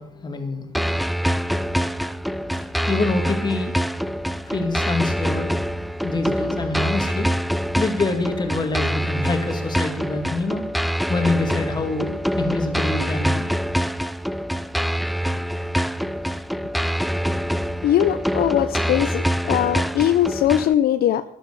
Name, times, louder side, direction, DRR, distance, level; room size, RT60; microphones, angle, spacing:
voice 1, 0.0-1.8 2.2-2.3 2.6-3.9 4.5-5.5 6.0-7.3 7.8-10.6 11.1-12.1 12.4-13.4, left 3 dB, 25° left, 6 dB, 2.6 m, -26 dB
sound 1, 0.7-20.7, equal, ahead, 0.4 m, -25 dB
voice 2, 17.8-21.2, left 11 dB, 65° left, 12 dB, 0.7 m, -20 dB
13.0 x 11.5 x 6.9 m, 0.73 s
cardioid pair, 110°, 17 cm